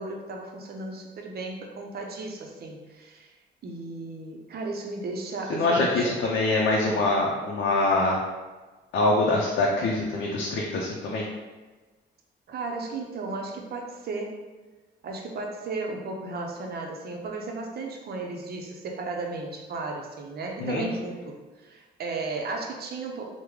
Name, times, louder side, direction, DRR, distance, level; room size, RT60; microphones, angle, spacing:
voice 1, 0.0-3.3 3.6-6.1 6.8-7.1 12.5-14.4 15.0-23.3, right 3 dB, 50° right, 2 dB, 0.6 m, -35 dB
voice 2, 5.5-8.2 8.9-11.3 20.6-20.8, left 2 dB, 65° left, -3 dB, 0.5 m, -24 dB
3.5 x 2.1 x 3.1 m, 1.3 s
cardioid pair, 90°, 20 cm